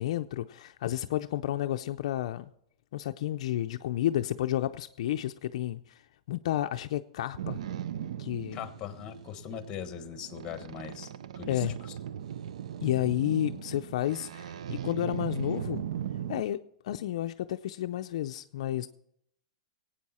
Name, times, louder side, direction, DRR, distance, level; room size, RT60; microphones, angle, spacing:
voice 1, 0.0-2.5 2.9-6.0 6.3-7.6 8.2-8.6 11.5-11.8 12.8-15.8 16.3-18.9, left 13 dB, 70° left, 8 dB, 0.4 m, -31 dB
Boat Water vehicle, 7.4-16.4, right 9 dB, 80° right, 0.5 m, -38 dB
voice 2, 8.5-11.9, left 9 dB, 25° left, 10 dB, 1.3 m, -41 dB
18.0 x 8.8 x 4.2 m, 0.74 s
supercardioid pair, 145°, 3 cm